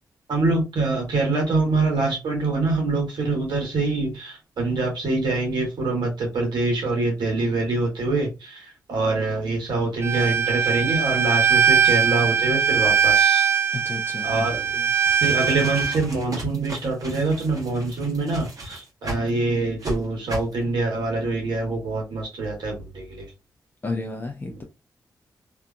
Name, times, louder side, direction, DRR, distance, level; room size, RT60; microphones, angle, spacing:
voice 1, 0.3-13.5 14.2-14.7 15.2-23.3, right 3 dB, 70° right, 1.3 m, -25 dB
Bowed string instrument, 10.0-16.0, right 7 dB, 30° right, 0.4 m, -21 dB
voice 2, 13.8-14.3 14.7-14.8 23.8-24.6, left 3 dB, 25° left, 0.6 m, -32 dB
sound 1, 14.9-19.3 19.8-20.0 20.3-20.5, right 1 dB, 50° right, 1.2 m, -35 dB
2.8 x 2.4 x 2.2 m
supercardioid pair, 50°, 8 cm